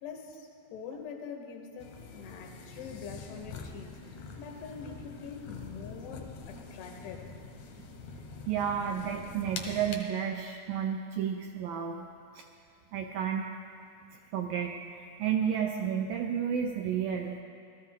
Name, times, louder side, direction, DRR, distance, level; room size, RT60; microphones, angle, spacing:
voice 1, 0.0-7.3, left 6 dB, 90° left, 2 dB, 3.3 m, -44 dB
sound 1, 1.8-10.0, left 4 dB, 75° left, 1.7 m, -45 dB
voice 2, 8.5-12.1 12.4-12.5 12.9-13.4 14.3-17.4, right 8 dB, 80° right, 2 dB, 2.0 m, -31 dB
18.0 x 13.5 x 3.7 m, 2.4 s
omnidirectional pair, 4.6 m